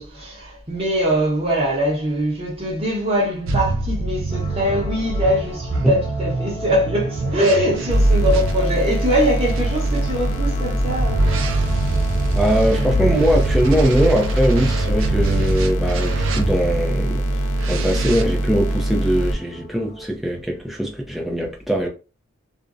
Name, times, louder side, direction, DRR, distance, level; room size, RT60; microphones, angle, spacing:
voice 1, 0.0-11.7, equal, 25° right, 0.9 m, -22 dB
sound 1, 3.4-8.5 9.5-16.8 17.6-18.2, right 2 dB, 75° right, 0.4 m, -24 dB
sound 2, 4.3-20.1, equal, 30° left, 0.7 m, -37 dB
sound 3, 7.9-19.3, right 1 dB, 85° left, 0.5 m, -23 dB
voice 2, 12.3-17.2 17.7-21.9, equal, ahead, 0.4 m, -21 dB
2.5 x 2.0 x 2.4 m
head